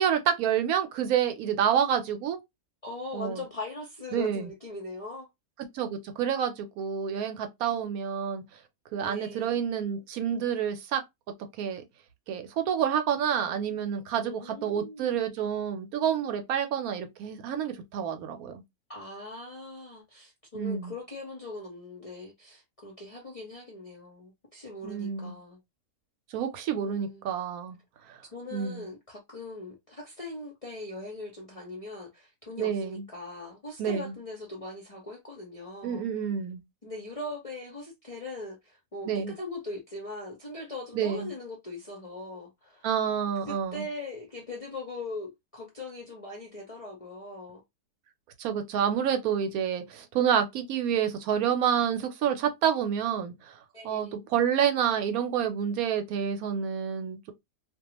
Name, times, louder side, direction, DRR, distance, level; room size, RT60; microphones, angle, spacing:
voice 1, 0.0-2.4 3.1-3.4 4.1-4.5 5.7-8.4 8.9-11.0 11.6-11.8 12.3-18.6 20.5-20.9 24.8-25.4 26.3-27.8 28.1-28.2 28.5-28.9 32.6-33.0 33.8-34.2 35.8-36.6 39.1-39.3 40.9-41.3 42.8-43.9 48.4-53.6 53.8-57.3, right 8 dB, 75° right, 1.0 m, -28 dB
voice 2, 2.8-5.3 9.0-9.6 14.2-15.3 18.9-25.6 26.8-27.3 28.3-36.1 36.8-42.9 43.5-47.6 53.7-54.3, left 2 dB, 45° left, 0.4 m, -40 dB
2.4 x 2.2 x 2.9 m
omnidirectional pair, 1.6 m